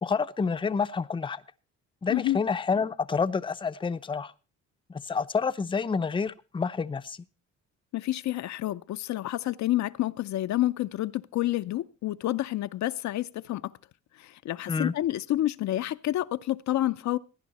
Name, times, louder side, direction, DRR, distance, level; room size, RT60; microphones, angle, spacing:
voice 1, 0.0-1.4 2.0-4.3 4.9-7.2 14.7-14.9, left 5 dB, 15° left, 0.5 m, -28 dB
voice 2, 2.1-2.4 7.9-13.7 14.2-17.2, left 14 dB, 65° left, 0.6 m, -29 dB
16.5 x 10.0 x 4.1 m
cardioid pair, 90°, 30 cm